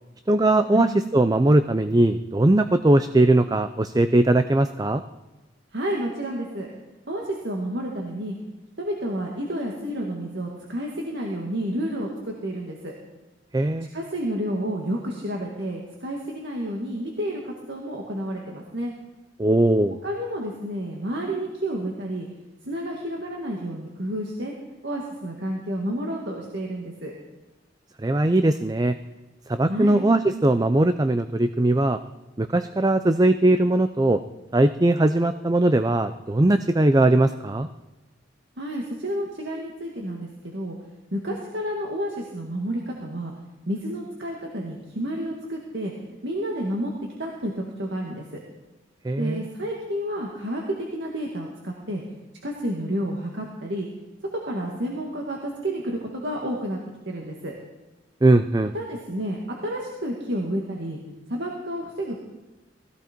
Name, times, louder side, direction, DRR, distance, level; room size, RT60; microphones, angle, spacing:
voice 1, 0.3-5.0 13.5-13.9 19.4-20.0 28.0-28.9 29.5-32.0 32.4-34.2 34.5-37.7 49.0-49.5 58.2-58.7, right 2 dB, 20° right, 10 dB, 0.5 m, -20 dB
voice 2, 5.7-6.7 7.1-8.4 8.8-12.9 13.9-18.9 20.0-22.3 22.6-24.5 24.8-27.1 29.7-30.0 38.6-40.8 41.1-43.3 43.7-46.9 47.2-48.4 49.2-52.0 52.4-53.9 54.3-56.8 57.1-57.5 58.7-61.0 61.3-62.2, equal, 65° right, -1 dB, 2.1 m, -30 dB
20.0 x 16.0 x 4.5 m, 1.1 s
head